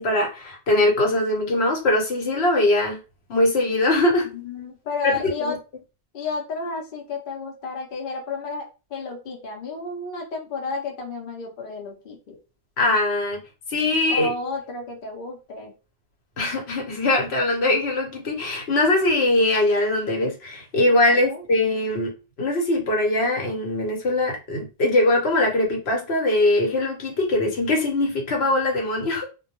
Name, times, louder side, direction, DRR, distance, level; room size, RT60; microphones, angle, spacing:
voice 1, 0.0-3.0 3.3-4.3 5.0-5.5 12.8-13.4 13.7-14.3 16.4-22.1 22.4-29.3, left 2 dB, 80° left, 1 dB, 1.1 m, -21 dB
voice 2, 4.3-5.6 6.1-12.4 14.1-15.7 21.1-21.4, left 3 dB, 60° left, 0 dB, 0.8 m, -32 dB
2.2 x 2.1 x 2.8 m, 0.31 s
omnidirectional pair, 1.1 m